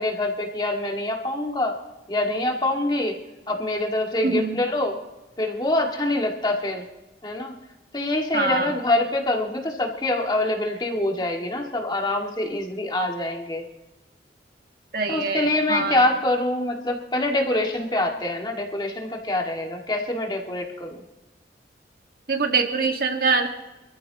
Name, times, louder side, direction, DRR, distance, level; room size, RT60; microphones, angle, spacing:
voice 1, 0.0-1.8 2.1-3.2 3.5-5.0 5.4-6.8 7.2-7.5 7.9-13.6 15.1-21.0, left 1 dB, 25° left, 1 dB, 1.9 m, -25 dB
voice 2, 4.2-4.6 8.3-8.8 14.9-16.0 22.3-23.5, right 4 dB, 55° right, 4 dB, 1.7 m, -24 dB
25.5 x 14.0 x 2.9 m, 1.0 s
head